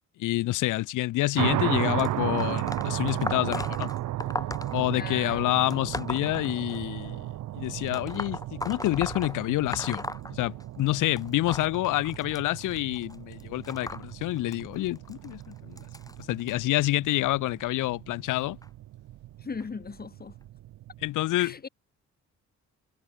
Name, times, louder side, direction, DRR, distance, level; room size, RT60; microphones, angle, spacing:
voice 1, 0.2-3.9 4.7-7.3 7.5-15.8 16.3-18.6 21.0-21.7, left 17 dB, 90° left, 1.6 m, -28 dB
sound 1, 1.4-21.1, right 14 dB, 70° right, 0.9 m, -35 dB
sound 2, 2.0-7.1 7.9-10.9 11.2-16.5 17.3-17.6 18.6-18.7 19.6-19.7 20.4-20.5, left 2 dB, 10° left, 3.8 m, -38 dB
voice 2, 4.9-5.9 19.4-20.4 21.4-21.7, left 5 dB, 30° left, 2.3 m, -39 dB
cardioid pair, 90°, 30 cm